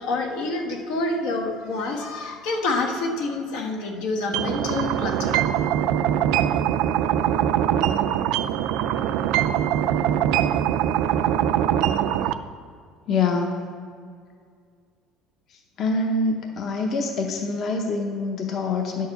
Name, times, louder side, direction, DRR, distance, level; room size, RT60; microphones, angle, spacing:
voice 1, 0.0-5.5, left 2 dB, 85° left, 1 dB, 1.4 m, -27 dB
sound 1, 4.3-12.3, right 10 dB, 65° right, 0.3 m, -22 dB
voice 2, 13.1-13.6 15.8-19.1, left 3 dB, 35° left, 2 dB, 0.7 m, -25 dB
10.5 x 4.7 x 6.6 m, 2.1 s
cardioid pair, 175°, 0 cm